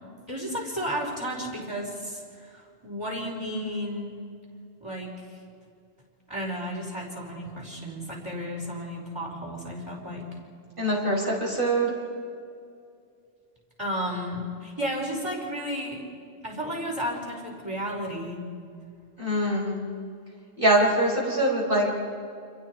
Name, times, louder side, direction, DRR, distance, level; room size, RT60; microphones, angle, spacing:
voice 1, 0.3-4.2 4.8-5.1 6.3-10.2 13.8-16.0 16.4-18.4, equal, 20° right, -3 dB, 5.0 m, -33 dB
voice 2, 10.8-11.9 19.2-19.8 20.6-22.0, right 1 dB, 40° right, -3 dB, 6.0 m, -23 dB
30.0 x 26.5 x 4.8 m, 2.4 s
omnidirectional pair, 1.3 m